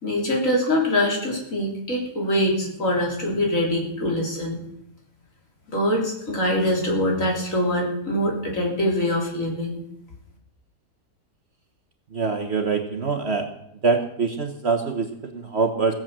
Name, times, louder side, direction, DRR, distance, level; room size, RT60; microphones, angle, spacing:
voice 1, 0.0-4.6 5.7-9.8, left 1 dB, 55° left, -1 dB, 3.8 m, -24 dB
voice 2, 12.1-13.5 13.8-15.9, right 4 dB, 45° right, 5 dB, 1.4 m, -24 dB
17.0 x 7.6 x 7.4 m, 0.78 s
omnidirectional pair, 1.7 m